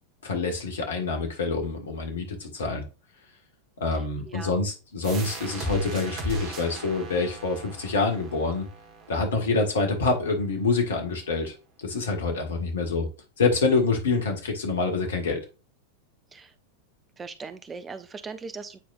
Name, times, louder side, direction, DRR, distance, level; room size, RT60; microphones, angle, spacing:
voice 1, 0.2-2.8 3.8-8.7 9.1-13.1 13.4-15.4, left 3 dB, 65° left, 3 dB, 1.7 m, -26 dB
voice 2, 3.9-4.6 16.3-16.5 17.2-18.8, right 4 dB, 20° right, 11 dB, 0.7 m, -40 dB
sound 1, 5.0-10.4, equal, 35° right, 1.5 m, -37 dB
9.2 x 4.3 x 2.5 m, 0.31 s
figure-of-eight pair, 90°, 0 cm